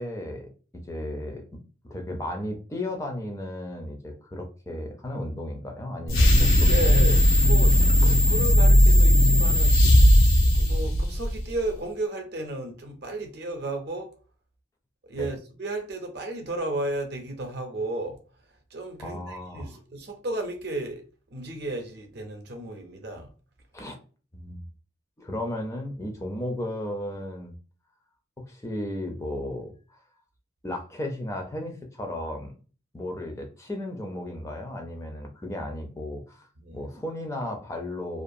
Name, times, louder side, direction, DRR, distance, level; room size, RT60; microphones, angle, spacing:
voice 1, 0.0-1.4 1.9-6.9 8.0-8.1 15.2-15.3 19.0-19.7 23.7-23.9 24.3-24.6 25.2-27.5 28.4-30.0 30.6-32.5 32.9-38.2, left 1 dB, 15° left, 0.4 m, -34 dB
sound 1, 6.1-11.5, equal, 90° left, 0.6 m, -17 dB
voice 2, 6.7-7.8 8.0-9.8 10.4-14.1 15.0-18.2 18.7-21.0 21.3-23.3 36.6-36.9, right 2 dB, 55° right, 0.6 m, -33 dB
2.4 x 2.2 x 2.6 m
head